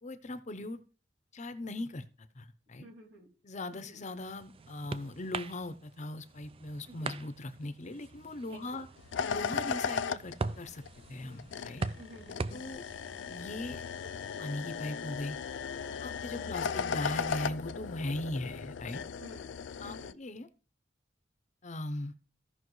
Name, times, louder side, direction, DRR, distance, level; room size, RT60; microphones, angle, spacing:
voice 1, 0.0-0.8 1.3-2.0 2.4-2.9 3.4-8.9 9.3-10.8 11.1-11.8 12.5-12.8 13.3-14.1 14.4-15.4 16.0-19.0 19.8-20.5 21.6-22.1, left 1 dB, 40° left, 11 dB, 0.7 m, -39 dB
voice 2, 2.8-3.3 3.7-4.0 6.9-7.2 8.5-8.8 11.9-12.4 16.4-16.7 19.2-19.5 19.8-20.2, right 1 dB, 70° right, -1 dB, 3.2 m, -52 dB
sound 1, 3.8-14.9, right 4 dB, 30° right, 0.4 m, -43 dB
sound 2, 9.0-20.1, left 6 dB, 75° left, 0.4 m, -37 dB
15.5 x 5.8 x 3.1 m, 0.37 s
head